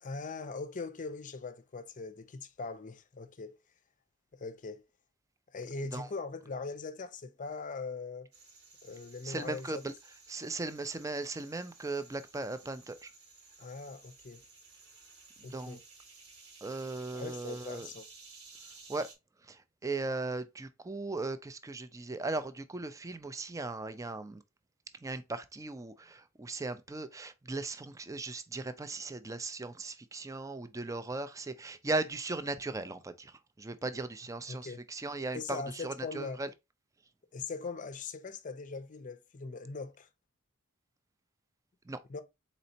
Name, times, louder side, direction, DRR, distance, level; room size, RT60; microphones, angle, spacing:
voice 1, 0.0-3.6 4.3-4.8 5.5-8.3 8.8-9.8 13.6-14.4 15.4-15.8 17.1-18.0 34.5-34.8 35.3-36.4 37.3-40.1 42.1-42.2, left 4 dB, 40° left, 0.5 m, -41 dB
sound 1, 8.3-19.1, right 4 dB, 85° right, 1.6 m, -55 dB
voice 2, 9.2-9.9 10.3-13.1 15.4-15.8 16.6-17.9 18.9-19.1 19.4-24.4 25.0-36.5 41.9-42.0, right 3 dB, 15° right, 0.4 m, -38 dB
4.2 x 4.0 x 2.7 m
head